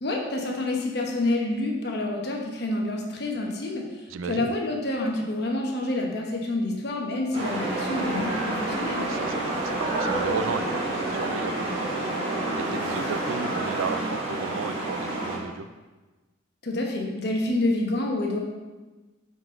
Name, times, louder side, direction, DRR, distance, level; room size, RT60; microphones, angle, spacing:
voice 1, 0.0-9.0 16.6-18.4, left 2 dB, 55° left, 0 dB, 1.1 m, -28 dB
voice 2, 4.1-4.5 9.0-15.7, right 5 dB, 90° right, 11 dB, 0.4 m, -34 dB
sound 1, 7.3-15.4, right 2 dB, 30° right, 1.7 m, -28 dB
9.1 x 4.2 x 3.8 m, 1.2 s
head